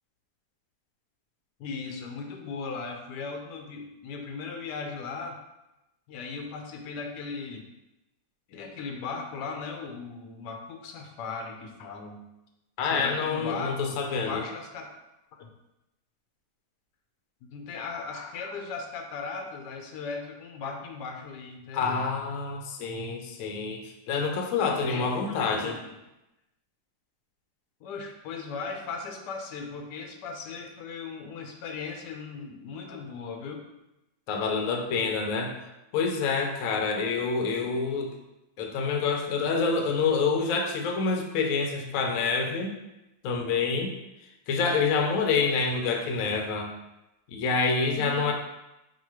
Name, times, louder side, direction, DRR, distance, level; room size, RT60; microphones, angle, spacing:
voice 1, 1.6-5.4 6.1-7.6 8.5-12.2 12.8-14.9 15.4-15.5 17.4-22.0 24.8-25.9 27.8-33.6 47.9-48.2, left 4 dB, 90° left, 3 dB, 1.2 m, -37 dB
voice 2, 12.8-14.4 21.7-25.8 32.9-33.0 34.3-35.5 35.9-38.2 38.6-42.7 43.2-43.9 44.5-46.7 47.3-48.3, left 4 dB, 65° left, 3 dB, 0.8 m, -27 dB
3.9 x 2.3 x 4.6 m, 0.94 s
omnidirectional pair, 1.8 m